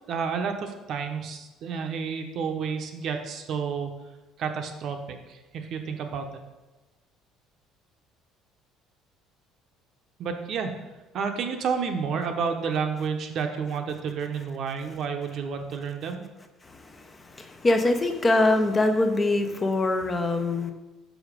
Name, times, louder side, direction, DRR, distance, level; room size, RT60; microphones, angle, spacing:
voice 1, 0.1-3.9 4.4-6.3 10.2-10.7 11.1-16.2, right 6 dB, 50° right, 5 dB, 0.8 m, -30 dB
voice 2, 16.6-20.7, left 2 dB, 20° left, 6 dB, 0.6 m, -24 dB
6.2 x 5.0 x 5.1 m, 1.1 s
cardioid pair, 145°, 0 cm